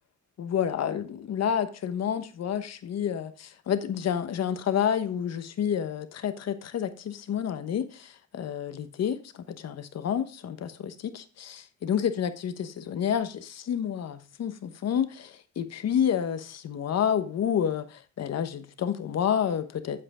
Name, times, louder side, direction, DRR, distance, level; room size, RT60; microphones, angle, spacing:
voice 1, 0.4-20.0, left 8 dB, 60° left, 1.1 m, -29 dB
8.5 x 7.5 x 3.6 m
cardioid pair, 90°, 30 cm